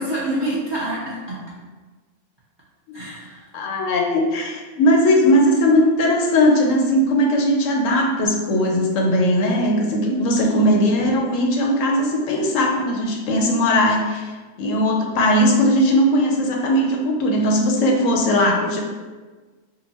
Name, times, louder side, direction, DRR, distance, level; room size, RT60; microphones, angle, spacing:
voice 1, 0.0-1.4 2.9-3.5 10.1-10.6, right 1 dB, 30° right, -7 dB, 0.6 m, -27 dB
voice 2, 3.5-14.3 14.6-18.8, equal, 80° left, 1 dB, 1.0 m, -18 dB
3.8 x 2.1 x 4.1 m, 1.3 s
omnidirectional pair, 1.3 m